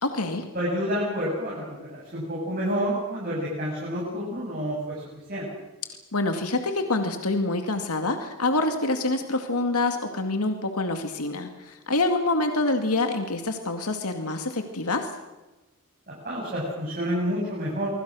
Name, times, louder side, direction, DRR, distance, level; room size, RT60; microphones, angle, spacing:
voice 1, 0.0-0.4 6.1-15.1, left 2 dB, 90° left, 5 dB, 2.2 m, -26 dB
voice 2, 0.5-5.0 5.3-5.5 16.1-17.9, equal, 40° right, -5 dB, 7.4 m, -29 dB
25.5 x 24.5 x 6.3 m, 1.1 s
head